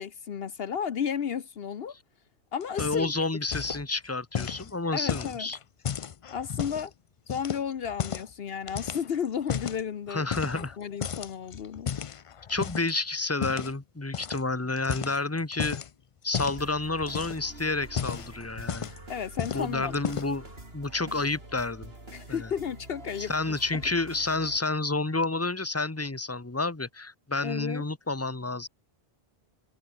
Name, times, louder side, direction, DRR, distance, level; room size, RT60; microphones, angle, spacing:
voice 1, 0.0-1.9 2.5-3.1 4.9-5.5 6.3-6.9 7.3-10.3 10.5-11.9 19.1-20.0 22.1-23.8 27.4-27.8, left 7 dB, 70° left, 1.1 m, -33 dB
sound 1, 2.6-3.2 3.4-3.8 4.3-6.9 7.3-8.3 8.7-9.8 10.3-10.8 11.0-12.9 13.4-13.7 14.1-14.4 14.8-15.9 16.3-16.6 17.0-17.5 17.8-19.1 19.4-19.7 19.9-20.4, left 8 dB, 45° left, 0.4 m, -33 dB
voice 2, 2.8-5.6 10.1-10.8 12.5-15.8 16.2-18.9 19.5-20.4 20.7-21.9 22.3-22.5 23.2-28.7, left 3 dB, 15° left, 1.4 m, -30 dB
sound 2, 16.6-24.6, right 2 dB, 75° right, 5.1 m, -46 dB
omnidirectional pair, 1.0 m